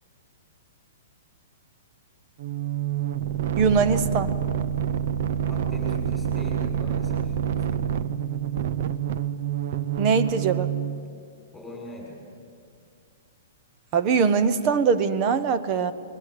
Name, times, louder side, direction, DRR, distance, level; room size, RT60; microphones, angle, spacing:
sound 1, 2.4-11.0, right 9 dB, 50° right, 0.7 m, -27 dB
voice 1, 3.6-4.3 10.0-10.7 13.9-15.9, right 5 dB, 30° right, 12 dB, 1.0 m, -22 dB
voice 2, 5.5-7.9 11.5-12.2, equal, ahead, -3 dB, 6.3 m, -40 dB
22.0 x 19.0 x 8.5 m, 2.3 s
hypercardioid pair, 165°, 0 cm